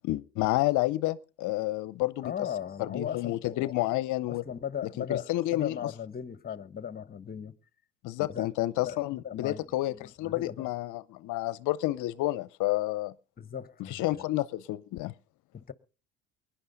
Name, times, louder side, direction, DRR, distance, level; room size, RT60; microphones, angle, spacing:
voice 1, 0.0-2.3 2.8-4.4 5.0-5.8 8.0-13.1 13.9-15.1, left 17 dB, 55° left, 0.6 m, -30 dB
voice 2, 2.2-3.8 4.3-7.5 8.2-8.5 8.9-10.7 13.4-14.2 15.5-15.7, left 8 dB, 25° left, 1.0 m, -38 dB
23.0 x 10.0 x 3.9 m
hypercardioid pair, 65°, 36 cm